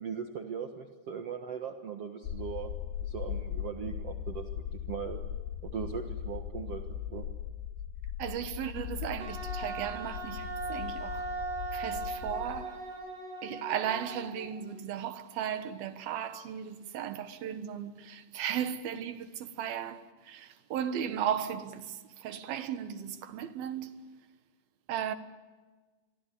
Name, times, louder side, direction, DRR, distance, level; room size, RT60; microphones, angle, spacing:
voice 1, 0.0-2.7 3.0-4.4 4.9-5.2 5.6-6.8 7.1-7.3, right 7 dB, 85° right, 1.3 m, -39 dB
sound 1, 2.2-12.7, left 9 dB, 75° left, 3.5 m, -39 dB
voice 2, 8.2-11.3 11.7-12.8 13.4-23.9 24.9-25.1, right 9 dB, 65° right, 2.8 m, -36 dB
Wind instrument woodwind instrument, 9.2-14.7, right 3 dB, 50° right, 6.5 m, -39 dB
29.0 x 24.0 x 8.4 m
omnidirectional pair, 5.4 m